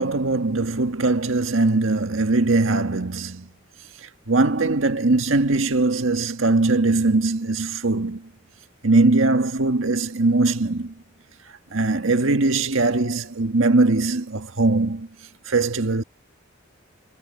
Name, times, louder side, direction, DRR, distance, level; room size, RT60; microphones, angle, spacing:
voice 1, 0.0-3.4 4.3-8.2 8.8-10.9 11.7-15.1 15.5-16.0, right 2 dB, 85° right, 1.7 m, -21 dB
head